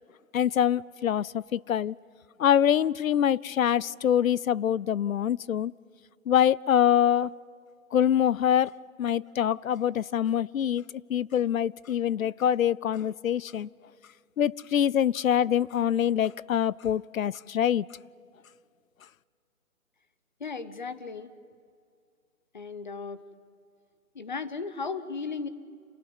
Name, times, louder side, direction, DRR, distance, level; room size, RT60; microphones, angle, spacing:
voice 1, 0.3-2.0 2.4-5.7 6.3-7.3 7.9-10.8 11.1-13.7 14.4-17.9, left 9 dB, 70° left, 0.6 m, -25 dB
voice 2, 20.4-21.3 22.5-23.2 24.1-25.5, left 4 dB, 35° left, 0.9 m, -35 dB
27.5 x 18.0 x 9.5 m
hypercardioid pair, 180°, 43 cm